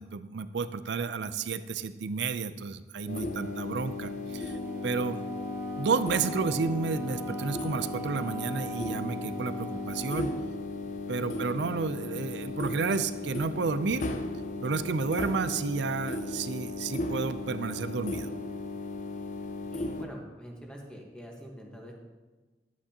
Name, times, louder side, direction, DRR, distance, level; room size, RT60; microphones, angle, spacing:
voice 1, 0.0-4.6 4.8-5.2 5.8-10.3 11.1-14.1 14.6-18.3, right 4 dB, 80° right, 12 dB, 0.5 m, -31 dB
sound 1, 3.1-20.1, left 2 dB, 45° left, 0.6 m, -36 dB
Wind instrument woodwind instrument, 4.2-10.5, equal, 15° right, 1.8 m, -40 dB
voice 2, 19.7-21.9, equal, 5° left, -1 dB, 1.2 m, -45 dB
12.0 x 8.4 x 2.9 m, 1.2 s
head